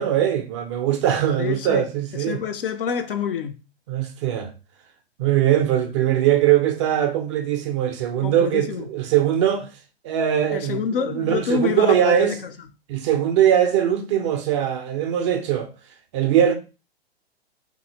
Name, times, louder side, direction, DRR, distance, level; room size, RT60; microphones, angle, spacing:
voice 1, 0.0-2.4 3.9-4.5 5.2-9.7 10.0-12.4 12.9-15.7 16.1-16.5, right 10 dB, 30° right, 0.4 m, -21 dB
voice 2, 1.4-1.8 2.3-3.5 8.2-8.9 10.5-12.3, left 7 dB, 60° left, 0.5 m, -26 dB
2.6 x 2.6 x 2.8 m
figure-of-eight pair, 110°, 31 cm